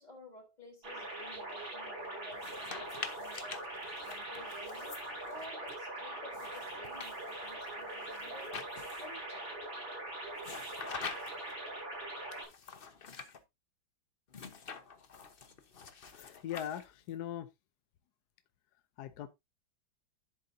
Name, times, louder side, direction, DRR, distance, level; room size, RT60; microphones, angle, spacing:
voice 1, 0.0-3.7 4.0-5.0 5.2-8.6 8.9-9.6, left 2 dB, 20° left, 3.7 m, -53 dB
sound 1, 0.8-12.5, right 1 dB, 85° right, 6.2 m, -42 dB
sound 2, 2.3-5.8 6.3-9.2 10.4-11.5 12.3-13.4 14.3-17.1, left 5 dB, 40° left, 0.8 m, -47 dB
voice 2, 16.1-17.5 19.0-19.3, left 11 dB, 65° left, 1.1 m, -40 dB
10.5 x 7.9 x 2.6 m
omnidirectional pair, 2.1 m